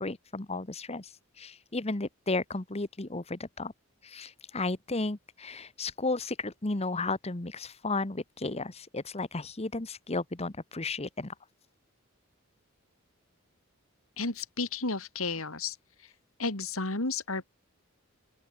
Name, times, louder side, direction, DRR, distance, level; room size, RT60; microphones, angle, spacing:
voice 1, 0.0-3.7 4.0-11.3, left 3 dB, 30° left, 1.2 m, -34 dB
voice 2, 14.2-15.8 16.4-17.4, left 3 dB, 70° left, 3.3 m, -32 dB
open air
head